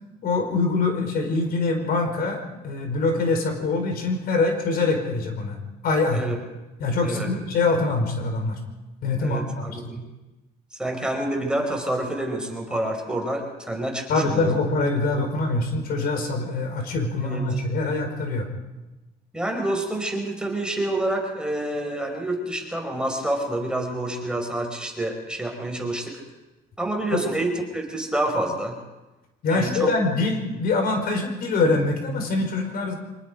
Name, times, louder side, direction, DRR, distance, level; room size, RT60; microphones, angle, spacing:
voice 1, 0.2-5.6 5.8-6.2 6.8-8.6 9.0-9.9 14.1-18.5 27.1-27.2 29.4-32.9, left 3 dB, 65° left, 5 dB, 4.7 m, -24 dB
voice 2, 9.2-10.0 10.8-14.6 17.2-17.5 19.3-26.2 26.8-28.8 29.5-29.9, right 1 dB, 5° right, 2 dB, 5.0 m, -28 dB
25.0 x 20.5 x 5.2 m, 1.1 s
cardioid pair, 110°, 17 cm